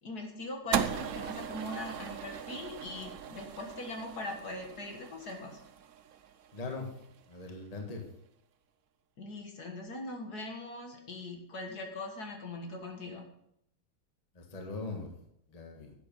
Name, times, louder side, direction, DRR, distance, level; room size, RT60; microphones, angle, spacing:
voice 1, 0.0-5.6 9.2-13.3, left 2 dB, 55° left, 2 dB, 2.1 m, -41 dB
sound 1, 0.7-7.1, right 8 dB, 70° right, 0.7 m, -38 dB
voice 2, 6.5-6.9 7.3-8.0 14.3-15.1 15.5-15.9, left 3 dB, 20° left, 2 dB, 1.5 m, -40 dB
11.0 x 8.4 x 5.3 m, 0.75 s
omnidirectional pair, 2.2 m